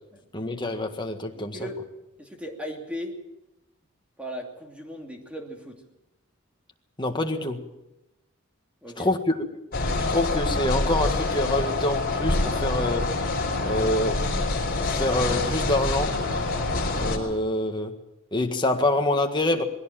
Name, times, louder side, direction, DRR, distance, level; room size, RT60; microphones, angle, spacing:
voice 1, 0.3-1.6 7.0-7.6 9.0-9.3 10.1-13.1 13.6-14.2 14.8-16.1 17.0-17.9 18.3-19.6, left 1 dB, 20° left, 4 dB, 1.7 m, -26 dB
voice 2, 2.2-3.2 4.2-5.8 8.8-9.1, equal, 5° right, 1 dB, 2.8 m, -37 dB
sound 1, 9.7-17.2, left 2 dB, 45° left, 4.8 m, -26 dB
21.0 x 16.5 x 7.6 m, 0.94 s
head